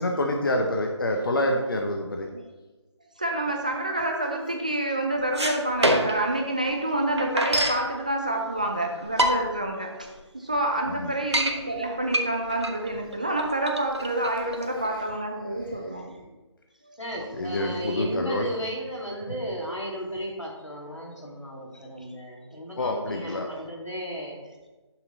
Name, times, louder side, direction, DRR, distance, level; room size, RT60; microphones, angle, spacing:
voice 1, 0.0-2.3 3.4-3.5 10.9-11.1 14.9-15.0 17.3-18.5 22.8-23.5, left 1 dB, 50° left, 2 dB, 0.9 m, -27 dB
voice 2, 3.2-16.3 22.0-22.1, right 1 dB, 15° right, 2 dB, 0.4 m, -28 dB
sound 1, 5.2-6.3 6.7-6.8 6.9-7.8 8.6-8.7 9.0-9.7 10.2-10.3 10.5-10.6 11.0-11.5 12.1-15.0, right 1 dB, 65° right, 1.1 m, -25 dB
voice 3, 17.0-24.4, equal, 85° left, -2 dB, 3.0 m, -35 dB
9.7 x 6.0 x 4.0 m, 1.2 s
figure-of-eight pair, 155°, 15 cm